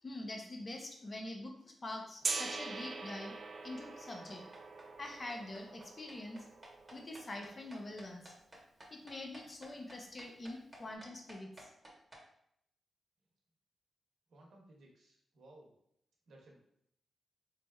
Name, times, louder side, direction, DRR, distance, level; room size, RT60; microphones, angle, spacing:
voice 1, 0.0-3.3 3.6-4.4 5.0-6.5 6.9-8.3 8.9-11.7, left 2 dB, 30° left, 1 dB, 0.6 m, -45 dB
Gong, 2.2-8.1, right 4 dB, 45° right, 0.4 m, -43 dB
sound 1, 4.3-12.2, right 1 dB, 15° right, 0.9 m, -54 dB
voice 2, 14.3-15.7 16.3-16.6, right 1 dB, 75° right, -1 dB, 0.9 m, -59 dB
4.0 x 3.3 x 2.3 m, 0.72 s
wide cardioid pair, 125°, 0 cm